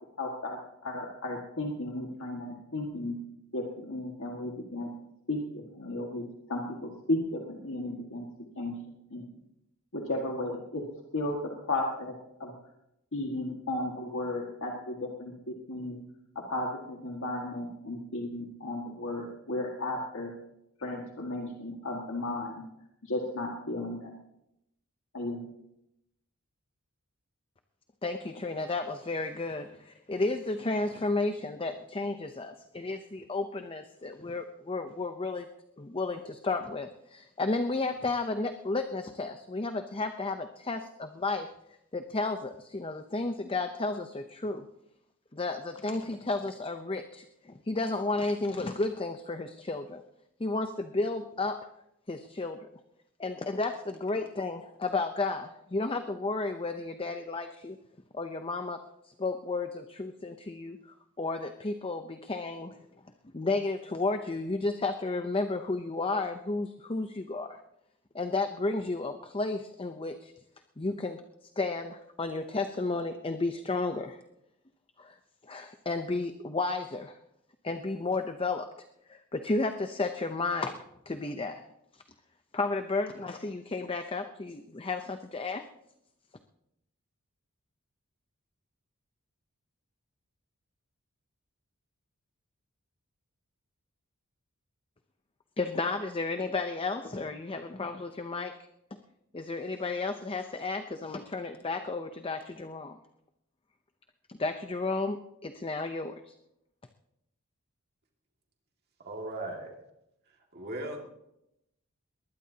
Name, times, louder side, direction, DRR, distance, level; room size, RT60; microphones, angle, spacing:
voice 1, 0.2-3.2 3.5-4.9 5.3-8.3 8.6-8.8 9.1-9.2 9.9-10.8 11.1-12.1 12.4-12.5 13.1-16.0 16.3-20.3 20.8-22.6 23.0-24.1 25.1-25.4, left 2 dB, 60° left, -1 dB, 1.9 m, -34 dB
voice 2, 28.0-35.5 35.8-41.5 41.9-44.6 45.3-50.0 50.4-51.6 52.1-52.7 53.2-57.8 58.1-58.8 59.0-60.8 61.2-62.8 63.3-67.6 68.1-70.3 70.8-71.2 71.6-74.2 75.0-75.2 75.4-77.2 77.6-78.7 79.1-81.6 81.9-82.0 82.5-85.6 95.6-98.5 99.3-103.0 104.3-106.3, left 3 dB, 25° left, 7 dB, 0.7 m, -32 dB
voice 3, 109.0-109.7 110.5-111.1, right 1 dB, 45° right, 1 dB, 2.2 m, -37 dB
21.0 x 19.5 x 2.9 m, 0.83 s
head